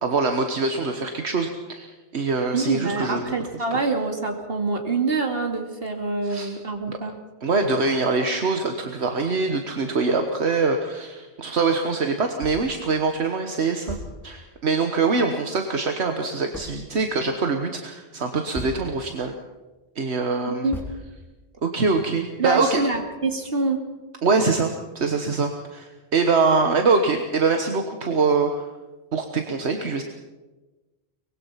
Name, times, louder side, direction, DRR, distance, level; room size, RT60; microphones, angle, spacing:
voice 1, 0.0-3.3 6.2-6.5 6.9-7.0 7.4-14.0 14.2-19.3 19.9-20.7 21.6-22.9 24.2-28.7 29.1-30.0, right 4 dB, 75° right, 5 dB, 1.6 m, -24 dB
voice 2, 2.5-7.2 20.5-20.8 22.4-23.8, right 3 dB, 60° right, 3 dB, 2.7 m, -25 dB
sound 1, 12.4-12.8 13.3-13.4 13.9-14.6 16.5-17.0 18.5-19.2 19.7-19.8 20.7-21.5, equal, ahead, 4.0 m, -37 dB
23.5 x 20.5 x 5.8 m, 1.2 s
omnidirectional pair, 1.1 m